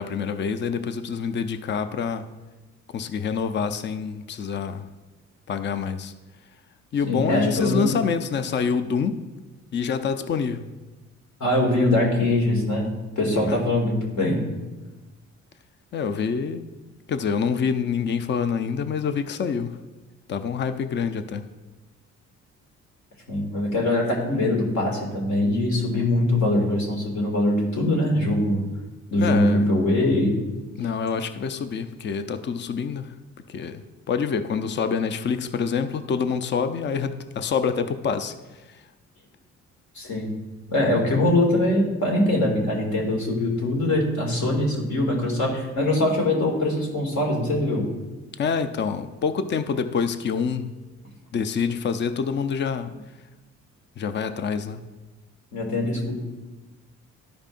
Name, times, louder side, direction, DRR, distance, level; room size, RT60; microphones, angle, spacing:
voice 1, 0.0-2.3 2.9-4.9 5.5-6.1 6.9-9.2 9.7-10.7 13.4-13.6 15.9-16.7 17.1-19.8 20.3-21.4 29.2-29.7 30.7-33.1 33.5-38.3 38.7-38.8 48.4-50.7 51.3-52.9 54.0-54.8, left 6 dB, 35° left, 10 dB, 0.5 m, -26 dB
voice 2, 7.1-7.9 11.4-12.9 13.2-14.4 23.3-28.6 29.1-30.4 39.9-40.3 40.7-47.9 55.5-56.2, left 1 dB, 70° left, -1 dB, 2.2 m, -22 dB
12.5 x 5.1 x 2.5 m, 1.1 s
cardioid pair, 90°, 30 cm